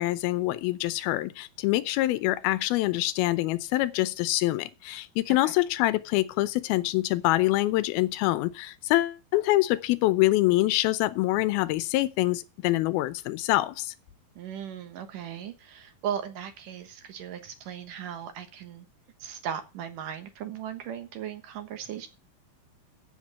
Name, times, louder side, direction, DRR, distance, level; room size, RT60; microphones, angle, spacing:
voice 1, 0.0-13.9, left 17 dB, 85° left, 2.6 m, -25 dB
voice 2, 14.4-18.9 19.2-22.1, right 9 dB, 65° right, 2.6 m, -37 dB
7.9 x 7.9 x 7.4 m
omnidirectional pair, 4.3 m